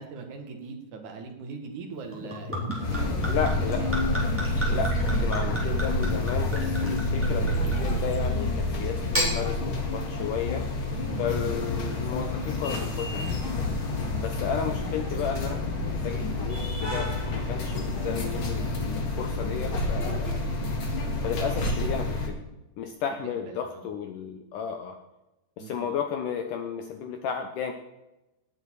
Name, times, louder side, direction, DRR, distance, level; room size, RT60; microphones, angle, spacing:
voice 1, 0.0-4.0 7.1-7.3 11.0-11.3 14.0-14.6 23.2-23.9 25.6-25.9, right 4 dB, 55° right, 3 dB, 2.8 m, -41 dB
Gurgling / Chink clink / Liquid, 2.1-8.3 8.9-9.3, equal, 5° right, 3.4 m, -33 dB
sound 1, 2.7-22.1, left 1 dB, 20° left, 2.0 m, -46 dB
sound 2, 2.8-22.3, left 2 dB, 45° left, 1.9 m, -28 dB
voice 2, 3.3-3.9 4.7-4.9 5.2-10.7 11.2-13.4 14.2-20.4 21.2-22.4 22.8-25.0 25.6-27.7, left 7 dB, 85° left, 5 dB, 1.8 m, -33 dB
18.5 x 8.1 x 4.8 m, 0.97 s
omnidirectional pair, 5.0 m